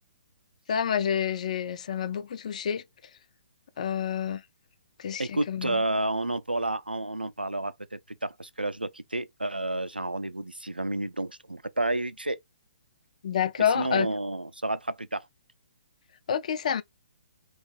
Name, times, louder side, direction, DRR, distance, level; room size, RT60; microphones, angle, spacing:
voice 1, 0.7-2.8 3.8-4.4 5.0-5.8 13.2-14.1 16.3-16.8, left 8 dB, 50° left, 0.4 m, -28 dB
voice 2, 5.2-12.4 13.6-15.3, right 2 dB, 90° right, 0.4 m, -30 dB
3.1 x 2.7 x 3.6 m
figure-of-eight pair, 130°, 5 cm